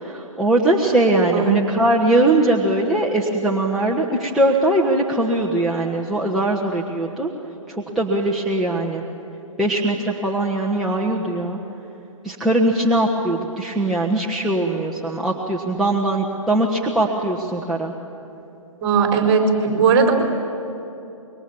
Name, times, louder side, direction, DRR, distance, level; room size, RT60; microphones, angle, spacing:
voice 1, 0.0-7.3 7.9-9.0 9.6-11.6 12.2-17.9, right 1 dB, ahead, -5 dB, 1.3 m, -20 dB
voice 2, 18.8-20.1, right 5 dB, 30° right, 1 dB, 4.2 m, -17 dB
27.0 x 23.0 x 7.2 m, 2.8 s
figure-of-eight pair, 135°, 17 cm